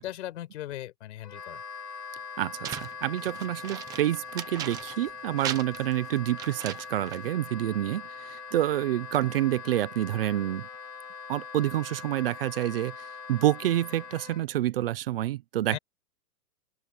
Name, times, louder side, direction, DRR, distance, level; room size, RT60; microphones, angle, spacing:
voice 1, 0.0-1.6 15.7-15.8, left 13 dB, 50° left, 5.2 m, -38 dB
Wind instrument woodwind instrument, 1.2-14.4, left 5 dB, 80° left, 3.8 m, -42 dB
voice 2, 2.4-10.7 11.3-15.8, right 13 dB, 35° right, 1.0 m, -28 dB
sound 1, 2.6-5.1 5.4-7.3, right 11 dB, 10° right, 0.7 m, -38 dB
open air
hypercardioid pair, 165°, 47 cm